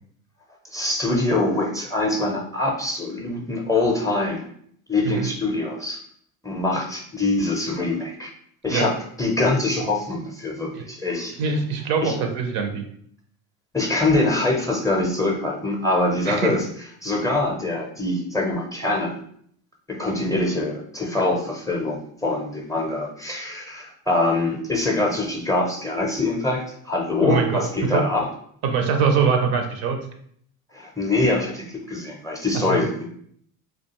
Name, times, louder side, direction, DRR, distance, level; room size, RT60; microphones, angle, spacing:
voice 1, 0.7-4.4 4.9-6.0 6.4-8.3 8.6-11.4 12.0-12.1 13.7-16.6 17.0-19.1 19.9-28.3 30.7-33.1, left 2 dB, 10° left, 0 dB, 0.5 m, -24 dB
voice 2, 11.4-12.8 16.3-16.6 27.2-27.6 27.9-28.1 28.6-30.0 32.5-32.8, right 5 dB, 60° right, 5 dB, 0.6 m, -23 dB
2.3 x 2.3 x 2.9 m, 0.65 s
hypercardioid pair, 75°, 42 cm